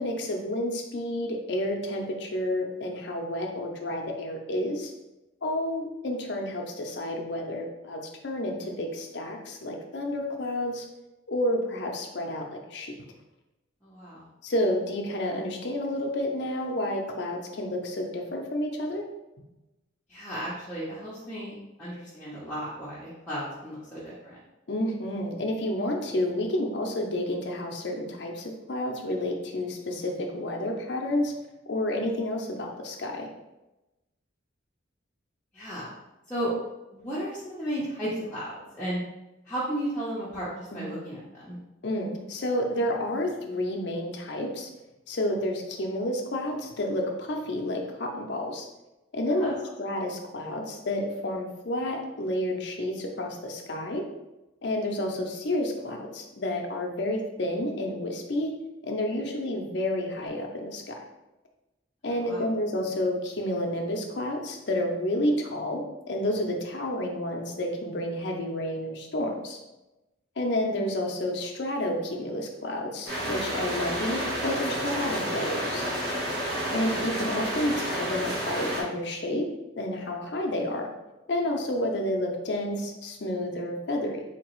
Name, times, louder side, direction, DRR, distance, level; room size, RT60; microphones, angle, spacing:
voice 1, 0.0-4.9 5.4-10.9 11.3-12.9 14.4-19.0 24.7-31.3 31.7-33.3 40.7-40.9 41.8-44.7 45.1-48.7 49.1-54.0 54.6-58.5 58.8-61.0 62.0-69.6 70.4-75.8 76.7-79.5 79.8-80.9 81.3-84.2, left 1 dB, 60° left, 2 dB, 0.6 m, -30 dB
voice 2, 13.8-14.2 20.1-24.4 35.5-35.9 36.3-36.5 36.9-39.0 39.5-41.6 49.3-49.5 62.1-62.5 76.6-76.8, equal, 10° left, -10 dB, 0.7 m, -34 dB
sound 1, 73.1-78.8, equal, 50° right, 1.0 m, -30 dB
3.9 x 2.8 x 3.0 m, 1.0 s
head